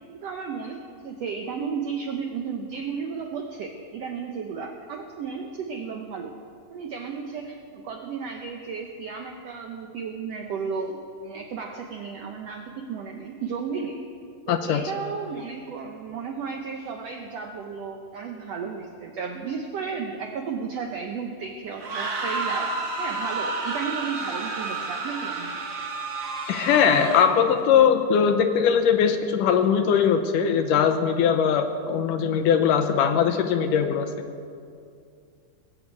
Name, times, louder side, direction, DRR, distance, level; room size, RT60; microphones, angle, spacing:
voice 1, 0.1-0.8 1.0-6.3 6.7-14.1 14.5-25.5, right 5 dB, 80° right, 2 dB, 1.5 m, -33 dB
voice 2, 14.5-14.8 26.5-34.1, left 7 dB, 75° left, 7 dB, 2.2 m, -20 dB
sound 1, 21.7-27.5, right 3 dB, 50° right, 1.4 m, -30 dB
19.0 x 8.6 x 8.2 m, 2.3 s
omnidirectional pair, 4.1 m